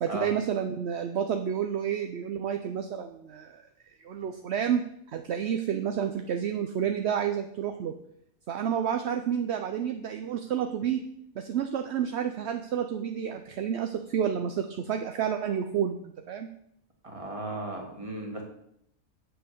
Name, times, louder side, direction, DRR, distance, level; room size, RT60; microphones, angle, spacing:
voice 1, 0.0-3.6 4.0-4.8 5.1-7.9 8.5-11.0 11.4-16.5, right 8 dB, 60° right, 5 dB, 0.8 m, -30 dB
voice 2, 17.0-18.4, right 1 dB, 20° right, 1 dB, 2.0 m, -35 dB
7.7 x 6.8 x 6.8 m, 0.74 s
omnidirectional pair, 1.6 m